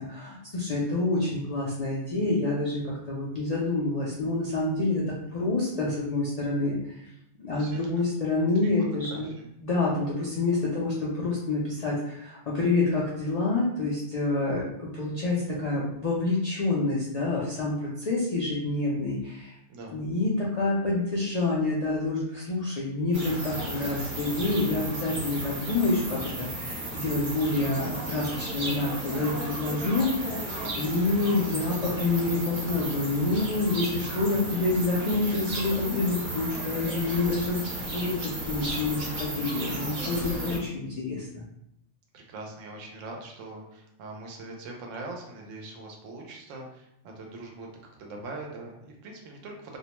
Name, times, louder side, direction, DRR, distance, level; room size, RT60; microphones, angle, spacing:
voice 1, 0.0-7.1 7.4-9.3 9.6-19.5 19.9-30.4 30.8-41.5, left 2 dB, 70° left, -5 dB, 0.3 m, -28 dB
voice 2, 7.5-8.1 8.6-8.7 9.1-9.5 19.7-20.0 29.7-30.1 42.1-47.7 48.0-49.8, right 2 dB, 80° right, 0 dB, 1.0 m, -42 dB
sound 1, 23.1-40.6, right 1 dB, 55° right, 0.9 m, -34 dB
2.5 x 2.1 x 2.9 m, 0.79 s
omnidirectional pair, 1.3 m